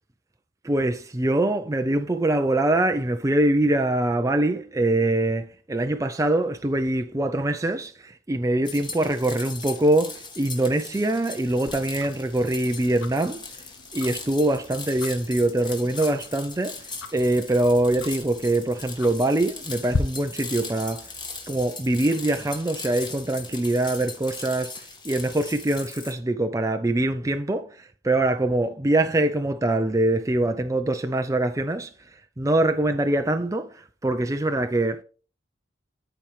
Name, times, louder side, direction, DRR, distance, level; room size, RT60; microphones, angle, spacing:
voice 1, 0.6-13.4 13.9-21.1 21.5-35.0, right 1 dB, 15° right, 0.4 m, -24 dB
sound 1, 8.7-26.1, left 4 dB, 25° left, 1.7 m, -39 dB
Tick-tock, 11.7-20.0, left 3 dB, 80° left, 0.8 m, -39 dB
13.0 x 4.4 x 3.2 m
head